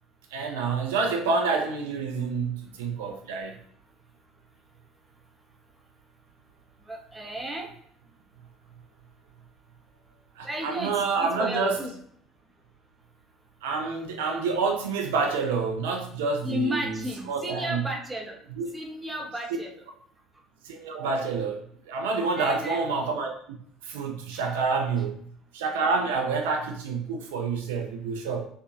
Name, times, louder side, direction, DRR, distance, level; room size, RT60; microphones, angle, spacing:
voice 1, 0.3-3.6 10.4-11.8 13.6-17.9 18.6-18.7 20.6-23.6 23.8-25.1 25.5-28.5, right 4 dB, 65° right, 4 dB, 0.3 m, -28 dB
voice 2, 6.9-7.7 10.4-11.9 16.4-18.4 18.7-19.8 22.4-22.8 24.3-24.4, equal, 10° right, 1 dB, 0.6 m, -33 dB
2.7 x 2.3 x 2.5 m, 0.64 s
figure-of-eight pair, 60°, 0 cm